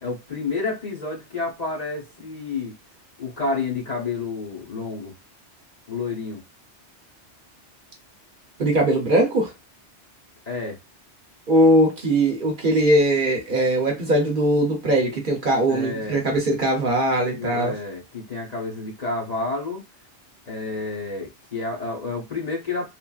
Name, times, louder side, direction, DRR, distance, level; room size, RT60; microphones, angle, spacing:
voice 1, 0.0-2.7 3.2-5.1 5.9-6.4 10.5-10.8 15.7-16.2 17.3-19.8 20.5-22.9, left 3 dB, 40° left, 0.8 m, -30 dB
voice 2, 8.6-9.5 11.5-17.7, right 1 dB, 50° right, 0.8 m, -20 dB
3.0 x 2.5 x 2.3 m
omnidirectional pair, 1.2 m